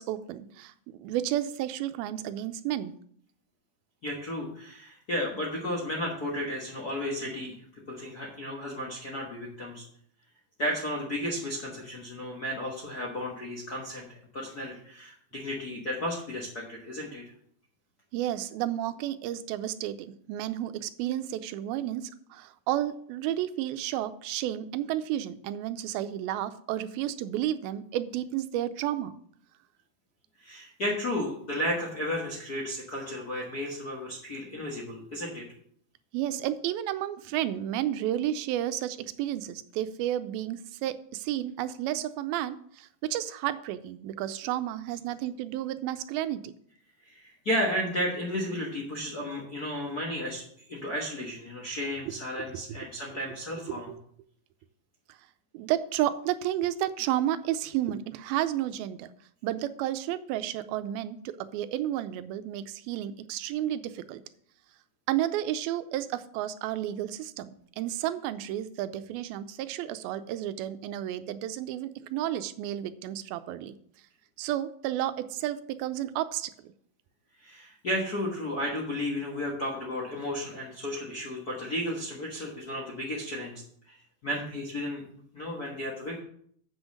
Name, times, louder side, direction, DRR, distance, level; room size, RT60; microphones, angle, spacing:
voice 1, 0.0-2.9 18.1-29.2 36.1-46.5 52.1-52.2 52.4-52.8 53.7-54.0 55.1-55.2 55.5-59.1 59.4-64.2 65.1-73.8 74.4-76.5, right 12 dB, 85° right, 12 dB, 2.5 m, -32 dB
voice 2, 4.0-9.8 10.6-14.0 14.3-17.2 30.4-35.5 47.0-50.4 50.7-53.9 77.4-84.0 84.2-85.0 85.3-86.2, equal, 80° left, -2 dB, 0.8 m, -33 dB
7.8 x 6.3 x 6.3 m, 0.63 s
omnidirectional pair, 4.3 m